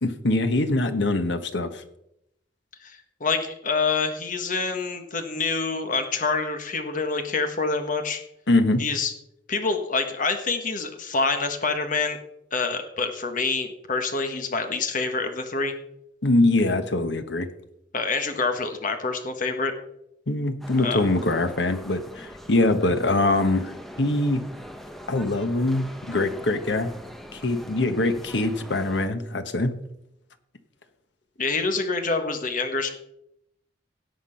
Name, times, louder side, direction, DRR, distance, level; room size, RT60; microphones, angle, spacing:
voice 1, 0.0-1.8 8.5-8.8 16.2-17.5 20.3-23.7 24.0-24.4 25.1-26.9 27.3-29.7, left 2 dB, 80° left, 9 dB, 1.2 m, -23 dB
voice 2, 2.8-8.2 8.8-9.1 9.5-12.2 12.5-15.7 17.9-19.7 20.8-21.0 31.4-33.0, left 4 dB, 50° left, 6 dB, 1.5 m, -26 dB
sound 1, 20.6-29.1, equal, ahead, 1.0 m, -42 dB
17.0 x 5.9 x 5.7 m, 0.81 s
head